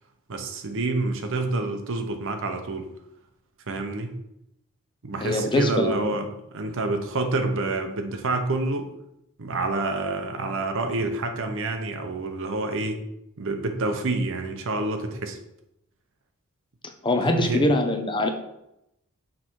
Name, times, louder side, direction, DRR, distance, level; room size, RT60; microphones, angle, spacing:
voice 1, 0.3-2.9 3.7-4.1 5.0-8.9 9.4-13.0 13.4-15.4 17.2-17.6, right 2 dB, 60° right, 6 dB, 0.8 m, -28 dB
voice 2, 5.2-6.2 17.0-18.3, left 1 dB, 20° left, 5 dB, 0.6 m, -23 dB
6.5 x 4.3 x 4.5 m, 0.83 s
head